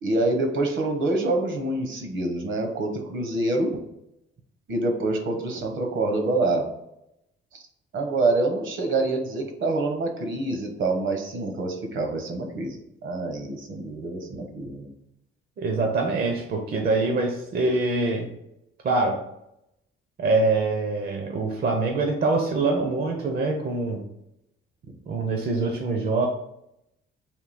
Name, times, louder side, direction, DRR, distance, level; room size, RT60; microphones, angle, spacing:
voice 1, 0.0-3.8 4.7-6.7 7.5-7.6 7.9-12.8 13.0-14.9, right 2 dB, 65° right, 4 dB, 0.9 m, -26 dB
voice 2, 15.6-18.3 18.8-19.2 20.2-24.1 25.1-26.3, right 3 dB, 45° right, 2 dB, 0.6 m, -24 dB
3.6 x 2.7 x 4.1 m, 0.83 s
cardioid pair, 100°, 21 cm